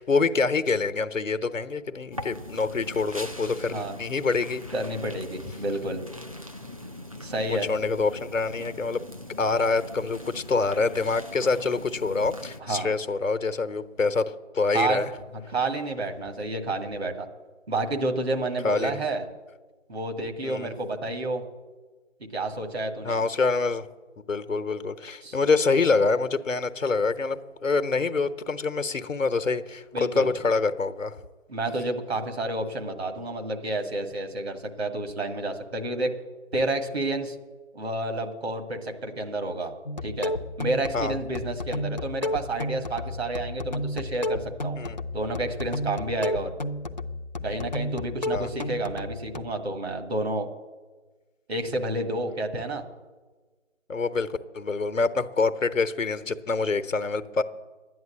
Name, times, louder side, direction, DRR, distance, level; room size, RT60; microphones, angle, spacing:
voice 1, 0.0-4.6 7.5-9.0 9.4-15.1 18.6-19.0 20.4-20.7 23.0-23.9 24.3-31.2 40.9-41.2 44.8-45.0 48.3-48.5 53.9-57.4, left 4 dB, 85° left, 11 dB, 1.0 m, -26 dB
sound 1, 2.1-12.6, left 1 dB, 30° right, 0.4 m, -41 dB
voice 2, 4.7-6.0 7.2-7.7 12.6-12.9 14.7-15.0 15.5-17.3 17.7-19.2 19.9-21.4 22.3-23.2 25.2-25.4 29.9-30.3 31.5-36.1 36.5-37.3 37.7-39.7 40.0-40.3 40.6-44.8 45.1-46.5 47.4-50.5 51.5-52.8, right 2 dB, 55° right, 5 dB, 1.8 m, -30 dB
sound 2, 39.9-49.4, left 1 dB, 35° left, 0.5 m, -32 dB
11.0 x 9.4 x 7.5 m, 1.3 s
figure-of-eight pair, 155°, 38 cm